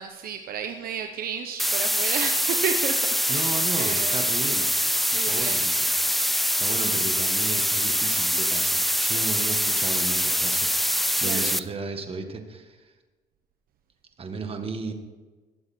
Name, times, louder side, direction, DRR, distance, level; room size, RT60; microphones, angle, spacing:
voice 1, 0.0-4.3 5.0-5.6 11.2-11.6, right 7 dB, 60° right, 6 dB, 0.9 m, -32 dB
sound 1, 1.6-11.6, equal, ahead, 0.4 m, -24 dB
voice 2, 3.3-4.7 5.1-5.8 6.6-12.9 14.2-14.9, right 4 dB, 35° right, 6 dB, 1.6 m, -34 dB
20.0 x 7.8 x 4.4 m, 1.3 s
cardioid pair, 110°, 17 cm